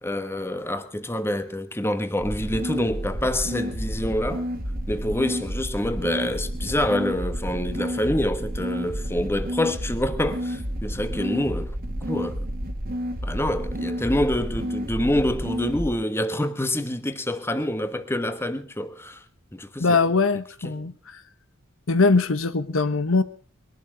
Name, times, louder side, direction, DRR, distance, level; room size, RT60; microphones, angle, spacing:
voice 1, 0.0-4.5 4.9-11.7 12.1-12.5 13.2-19.2 19.5-20.0 20.6-20.7, left 1 dB, 10° left, 1.2 m, -26 dB
sound 1, 2.2-15.9, equal, 45° right, 1.9 m, -30 dB
voice 2, 19.8-21.2 21.9-23.2, left 3 dB, 70° left, 1.1 m, -21 dB
21.5 x 12.0 x 5.1 m
head